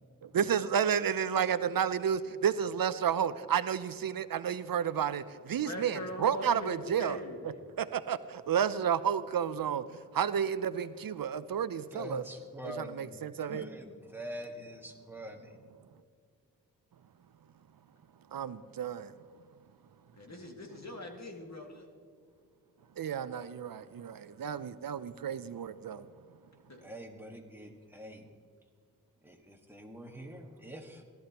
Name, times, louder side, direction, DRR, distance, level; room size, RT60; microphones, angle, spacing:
voice 1, 0.2-9.8 10.1-12.2 12.6-13.6 18.3-19.1 23.0-26.1, right 8 dB, 75° right, 14 dB, 0.5 m, -31 dB
voice 2, 5.5-7.6 20.2-21.9 26.7-26.8, left 1 dB, 50° left, 1 dB, 2.1 m, -42 dB
voice 3, 11.9-13.1 13.5-15.6 26.8-28.3 29.2-31.0, equal, 5° right, 1 dB, 1.6 m, -45 dB
17.5 x 13.0 x 2.9 m, 2.2 s
wide cardioid pair, 75°, 34 cm